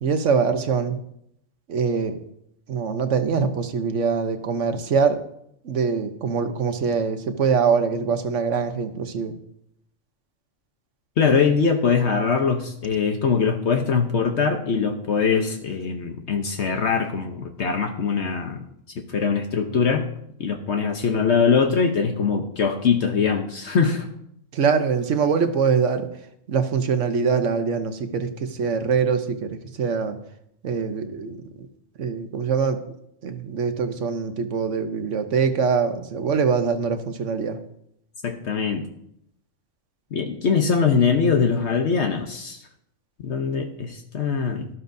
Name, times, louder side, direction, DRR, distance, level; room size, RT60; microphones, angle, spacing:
voice 1, 0.0-1.0 1.7-2.2 2.7-5.2 5.6-9.3 24.5-26.1 26.5-30.2 30.6-31.4 32.0-32.8 33.2-37.6, right 5 dB, 75° right, 8 dB, 1.2 m, -23 dB
voice 2, 11.2-18.6 19.1-20.1 20.4-24.1 38.2-38.9 40.1-42.6 43.2-44.7, left 5 dB, 65° left, 5 dB, 1.1 m, -22 dB
12.5 x 12.5 x 2.7 m, 0.76 s
omnidirectional pair, 1.3 m